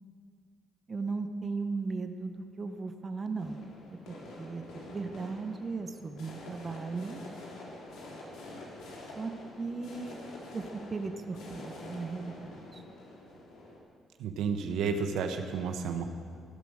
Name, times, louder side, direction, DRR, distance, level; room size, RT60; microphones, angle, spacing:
voice 1, 0.9-3.6 4.1-7.2 9.2-9.3 9.6-10.2 10.5-10.6 10.9-12.8, right 4 dB, 35° right, 6 dB, 1.2 m, -37 dB
sound 1, 3.4-13.8, left 2 dB, 85° left, 3.4 m, -47 dB
voice 2, 14.2-16.0, right 5 dB, 85° right, 6 dB, 1.2 m, -31 dB
15.5 x 12.0 x 6.6 m, 2.2 s
cardioid pair, 90°, 0 cm